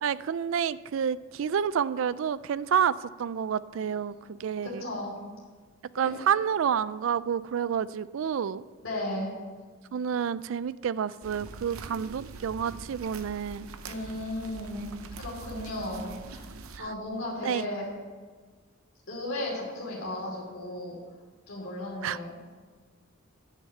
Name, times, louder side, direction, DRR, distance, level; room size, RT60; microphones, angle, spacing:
voice 1, 0.0-2.9 3.2-4.1 4.4-4.8 6.0-8.6 9.9-13.7 17.4-17.6 22.0-22.2, right 8 dB, 70° right, 17 dB, 0.3 m, -29 dB
voice 2, 3.8-5.2 6.0-6.1 8.8-9.3 13.8-14.9 15.2-16.4 16.8-17.9 19.1-21.0 21.5-22.3, left 1 dB, 70° left, -4 dB, 2.8 m, -35 dB
sound 1, 11.2-16.8, right 3 dB, 85° right, 0.7 m, -44 dB
10.0 x 6.4 x 7.5 m, 1.4 s
head